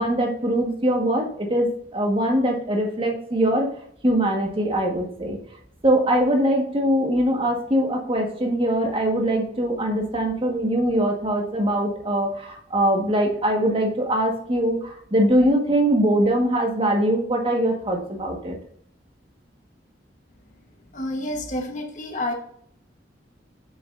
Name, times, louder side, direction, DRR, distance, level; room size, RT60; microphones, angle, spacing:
voice 1, 0.0-3.7 4.0-5.4 5.8-18.5, right 1 dB, 30° right, 1 dB, 1.4 m, -22 dB
voice 2, 20.9-22.3, left 1 dB, 45° left, 2 dB, 1.2 m, -29 dB
7.1 x 7.0 x 2.5 m, 0.64 s
head